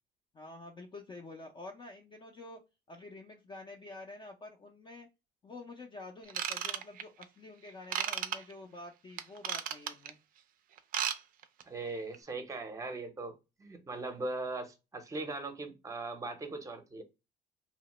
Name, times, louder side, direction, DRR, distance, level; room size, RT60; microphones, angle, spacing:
voice 1, 0.3-2.6 2.9-5.1 5.4-10.2, left 2 dB, 30° left, 0.4 m, -48 dB
Ratchet pawl / Tools, 6.3-7.2 7.9-8.4 9.2-10.1 10.8-11.2 11.4-11.6 12.1-12.2, right 9 dB, 55° right, 0.4 m, -34 dB
voice 2, 11.7-17.0, right 3 dB, 20° right, 0.6 m, -39 dB
2.9 x 2.0 x 2.9 m
cardioid pair, 110°, 17 cm